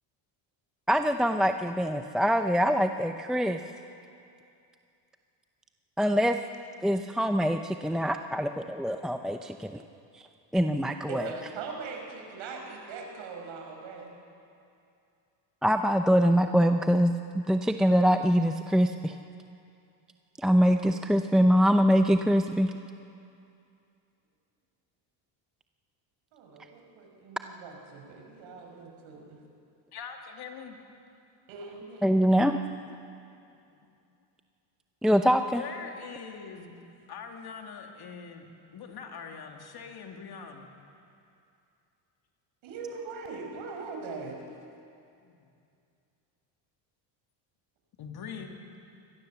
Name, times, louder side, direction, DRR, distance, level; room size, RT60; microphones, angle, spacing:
voice 1, 0.9-3.6 6.0-6.4 6.8-9.8 10.1-10.2 10.5-11.3 15.6-19.1 20.4-22.7 32.0-32.6 35.0-35.6, equal, ahead, 7 dB, 0.6 m, -24 dB
voice 2, 11.1-14.1 26.3-29.4 31.5-32.1 42.6-44.4, right 4 dB, 70° right, 2 dB, 5.4 m, -41 dB
voice 3, 29.9-30.8 33.4-34.0 35.5-36.7 37.1-40.7 45.2-45.5 48.0-48.6, left 6 dB, 50° left, 3 dB, 2.8 m, -43 dB
23.5 x 18.5 x 7.1 m, 2.6 s
supercardioid pair, 100°, 48 cm